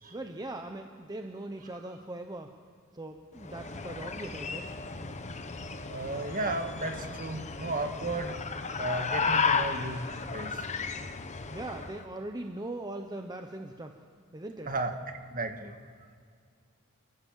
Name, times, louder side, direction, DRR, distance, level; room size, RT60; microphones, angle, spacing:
voice 1, 0.1-2.6 2.9-4.7 11.5-14.0 14.3-14.7, right 2 dB, 20° right, 4 dB, 0.9 m, -40 dB
sound 1, 3.4-12.0, left 5 dB, 35° left, 0.9 m, -34 dB
voice 2, 5.9-8.3 8.8-10.0 10.3-10.6 14.7-14.9 15.3-15.7, right 2 dB, 40° right, 5 dB, 1.8 m, -34 dB
29.0 x 14.0 x 7.6 m, 2.1 s
head